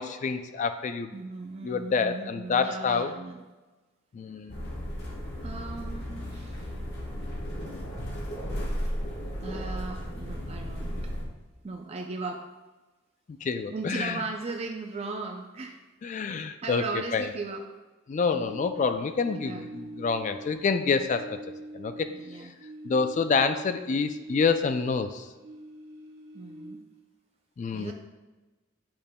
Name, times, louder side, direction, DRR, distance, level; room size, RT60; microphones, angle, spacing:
voice 1, 0.0-1.1 1.6-3.1 4.1-4.7 13.3-14.2 16.0-17.3 18.1-21.4 21.7-22.1 22.4-22.5 22.8-25.3 27.6-27.9, left 5 dB, 40° left, 9 dB, 0.3 m, -27 dB
voice 2, 1.1-3.4 5.4-6.6 9.4-10.9 11.6-12.4 13.7-15.8 16.6-17.6 19.3-19.7 22.1-22.5 26.3-26.8 27.7-27.9, right 3 dB, 30° right, 2 dB, 0.4 m, -37 dB
sound 1, 4.5-11.3, equal, 60° left, 1.2 m, -34 dB
sound 2, 18.2-20.8 21.0-25.0 25.3-27.0, right 1 dB, 60° right, 1.1 m, -44 dB
8.7 x 5.2 x 2.2 m, 1.2 s
head